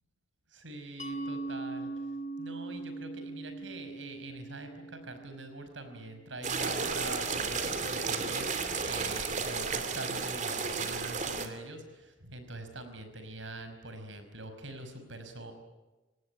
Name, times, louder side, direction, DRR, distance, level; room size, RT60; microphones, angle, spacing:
voice 1, 0.5-1.9 2.4-15.5, right 2 dB, 80° right, 7 dB, 5.3 m, -44 dB
Mallet percussion, 1.0-6.4, right 2 dB, 40° left, 2.0 m, -41 dB
sound 1, 6.4-11.5, right 4 dB, 40° right, 2.7 m, -33 dB
26.0 x 18.5 x 9.9 m, 1.1 s
head